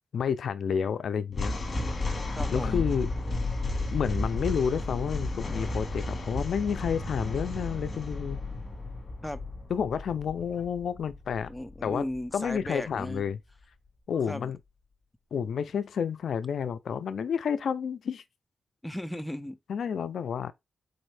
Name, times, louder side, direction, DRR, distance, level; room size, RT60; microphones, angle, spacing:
voice 1, 0.1-1.6 2.5-3.1 3.9-8.4 9.7-11.5 11.8-12.1 12.3-13.4 14.1-14.6 15.3-18.2 19.7-20.5, left 7 dB, 80° left, 0.3 m, -30 dB
sound 1, 1.3-12.6, left 2 dB, 40° left, 1.3 m, -33 dB
voice 2, 2.4-2.8 9.2-9.4 11.5-13.2 14.3-14.5 18.8-19.6, left 1 dB, 5° left, 0.4 m, -36 dB
3.9 x 2.5 x 3.2 m
cardioid pair, 95°, 0 cm